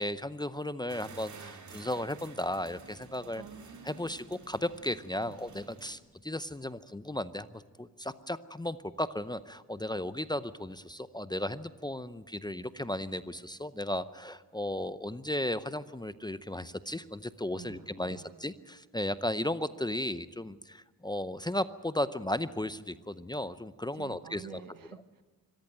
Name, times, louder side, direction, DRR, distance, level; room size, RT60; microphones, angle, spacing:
voice 1, 0.0-3.4 3.8-24.6, left 1 dB, 10° left, 13 dB, 0.6 m, -35 dB
sound 1, 0.9-6.0, right 4 dB, 55° right, 2.4 m, -51 dB
voice 2, 3.3-4.2 5.2-5.3 17.5-18.3 23.9-25.2, right 7 dB, 70° right, 9 dB, 1.6 m, -49 dB
25.0 x 14.5 x 9.0 m, 1.3 s
cardioid pair, 100°, 35 cm